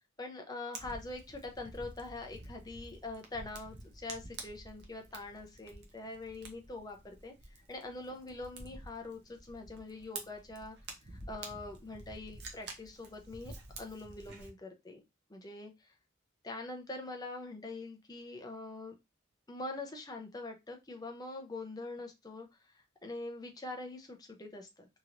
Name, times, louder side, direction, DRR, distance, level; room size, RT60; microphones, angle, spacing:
voice 1, 0.2-7.3 7.7-10.8 11.1-13.5 13.8-15.0 15.3-15.9 16.4-18.9 19.5-22.5 23.0-24.9, left 2 dB, 20° left, 3 dB, 0.5 m, -44 dB
Fire, 0.7-14.5, right 3 dB, 55° right, 0.7 m, -49 dB
2.9 x 2.9 x 2.5 m, 0.22 s
head